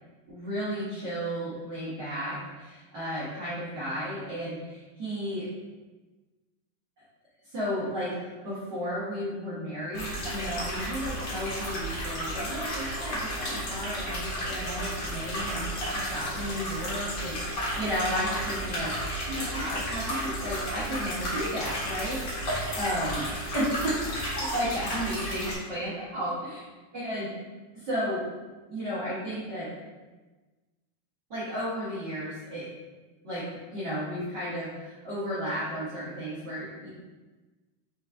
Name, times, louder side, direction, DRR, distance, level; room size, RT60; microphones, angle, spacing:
voice 1, 0.3-5.5 7.4-23.2 23.5-23.6 24.4-26.6 26.9-27.3 27.7-28.2 28.7-29.7 31.3-32.7 33.2-36.9, equal, 70° right, -11 dB, 1.0 m, -33 dB
sound 1, 9.9-25.6, equal, 80° left, 0.9 m, -33 dB
4.4 x 3.8 x 2.5 m, 1.3 s
omnidirectional pair, 3.6 m